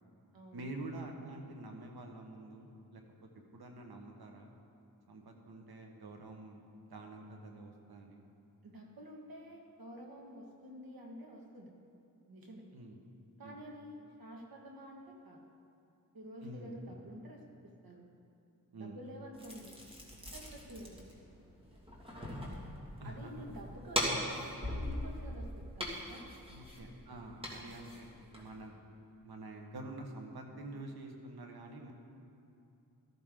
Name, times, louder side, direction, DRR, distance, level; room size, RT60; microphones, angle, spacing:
voice 1, 0.5-4.5 5.1-8.2 12.7-13.0 13.4-13.6 16.4-17.0 18.7-19.0 23.0-23.3 26.5-28.8 29.2-31.9, right 2 dB, 85° right, 2 dB, 1.5 m, -47 dB
voice 2, 8.6-11.7 12.3-12.6 13.4-15.4 16.1-18.1 18.7-19.8 20.3-21.0 23.0-26.3, equal, 70° right, 0 dB, 1.9 m, -50 dB
sound 1, 19.3-28.7, equal, 15° right, 2.2 m, -41 dB
13.5 x 13.5 x 3.8 m, 2.7 s
wide cardioid pair, 85°, 37 cm